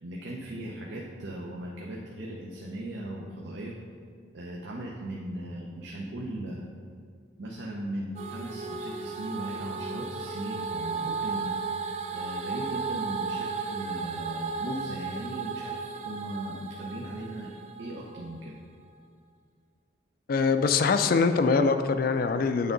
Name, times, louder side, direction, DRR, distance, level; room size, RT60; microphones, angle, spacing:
voice 1, 0.0-3.8 4.3-6.6 7.4-18.6, right 1 dB, 70° right, -2 dB, 0.7 m, -38 dB
sound 1, 8.2-18.4, right 4 dB, 35° right, 0.4 m, -35 dB
voice 2, 20.3-22.7, left 4 dB, 50° left, 9 dB, 0.3 m, -23 dB
8.5 x 3.6 x 5.1 m, 2.1 s
head